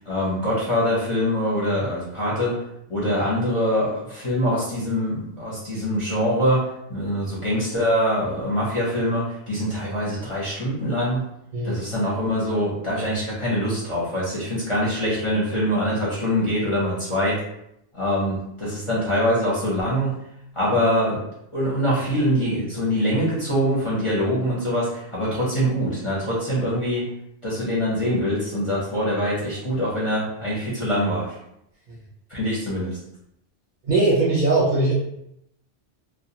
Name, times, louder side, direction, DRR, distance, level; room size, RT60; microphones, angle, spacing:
voice 1, 0.1-2.5 2.9-11.2 11.6-17.4 17.9-20.1 20.6-21.2 21.5-27.0 27.4-31.4 32.3-33.0, equal, 30° left, -8 dB, 0.7 m, -24 dB
voice 2, 33.8-34.9, right 2 dB, 50° right, -6 dB, 0.7 m, -20 dB
2.3 x 2.3 x 2.8 m, 0.78 s
omnidirectional pair, 1.2 m